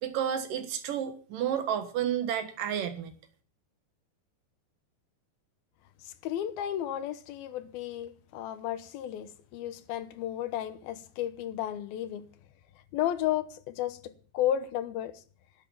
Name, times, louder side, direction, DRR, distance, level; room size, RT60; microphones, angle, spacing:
voice 1, 0.0-3.1, right 9 dB, 70° right, 3.0 m, -31 dB
voice 2, 6.0-12.3 12.9-15.1, left 11 dB, 85° left, 2.9 m, -33 dB
12.0 x 10.5 x 7.0 m
omnidirectional pair, 4.2 m